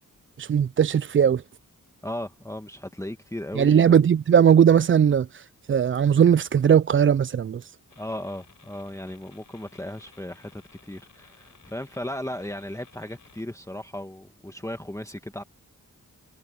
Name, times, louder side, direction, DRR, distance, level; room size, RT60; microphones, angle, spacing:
voice 1, 0.4-1.4 3.6-7.7, right 8 dB, 35° right, 0.4 m, -19 dB
voice 2, 2.0-4.0 8.0-15.4, left 1 dB, 10° left, 1.6 m, -36 dB
sound 1, 7.9-13.4, left 5 dB, 65° left, 4.1 m, -56 dB
cardioid pair, 45°, 34 cm